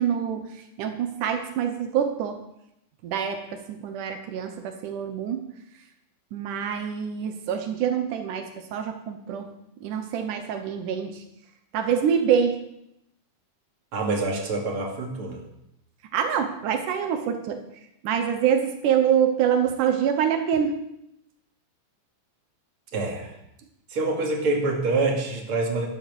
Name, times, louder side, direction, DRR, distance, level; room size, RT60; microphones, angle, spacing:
voice 1, 0.0-2.4 3.0-5.4 6.3-9.5 9.8-11.2 11.7-12.6 16.1-17.6 18.0-20.8, right 8 dB, 85° right, 6 dB, 2.6 m, -25 dB
voice 2, 13.9-15.4 22.9-23.3 23.9-25.9, right 3 dB, 45° right, 0 dB, 3.2 m, -26 dB
12.0 x 12.0 x 7.0 m, 0.82 s
omnidirectional pair, 3.5 m